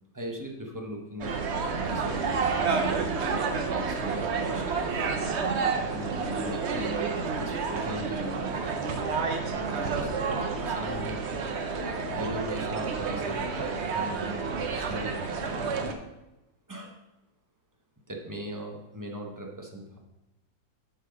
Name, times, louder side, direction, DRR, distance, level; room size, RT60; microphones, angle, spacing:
voice 1, 0.1-1.4 1.7-4.6 5.7-8.8 9.4-11.2 12.1-16.0 16.7-17.0 18.1-20.0, equal, 15° right, 1 dB, 0.7 m, -39 dB
sound 1, 1.2-15.9, right 4 dB, 55° right, 0.8 m, -30 dB
8.1 x 5.6 x 5.2 m, 0.97 s
omnidirectional pair, 2.0 m